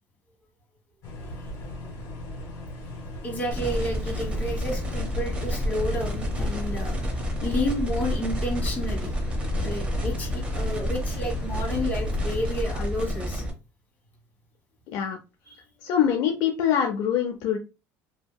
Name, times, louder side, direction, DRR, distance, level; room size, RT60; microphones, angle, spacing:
sound 1, 1.0-12.6, left 1 dB, 55° left, 1.6 m, -38 dB
voice 1, 3.2-6.9 7.4-9.1 9.6-13.4, equal, 25° left, -1 dB, 1.2 m, -31 dB
sound 2, 3.5-13.5, left 1 dB, 20° right, 0.8 m, -29 dB
voice 2, 14.9-15.2 15.8-17.6, left 9 dB, 70° left, 3 dB, 0.5 m, -24 dB
2.8 x 2.7 x 2.2 m, 0.29 s
cardioid pair, 135°, 6 cm